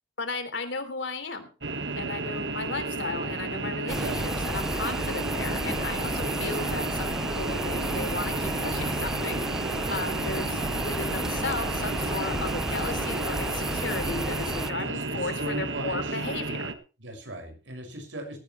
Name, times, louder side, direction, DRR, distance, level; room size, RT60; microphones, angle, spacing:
voice 1, 0.2-1.5 2.0-16.7, left 3 dB, 75° left, 8 dB, 3.3 m, -35 dB
sound 1, 1.6-16.7, right 3 dB, 65° right, 1.6 m, -32 dB
sound 2, 3.9-14.7, equal, 5° right, 0.6 m, -32 dB
voice 2, 6.2-6.6 14.8-16.2 17.0-18.4, equal, 80° right, 5 dB, 6.2 m, -38 dB
17.5 x 15.5 x 3.3 m, 0.34 s
head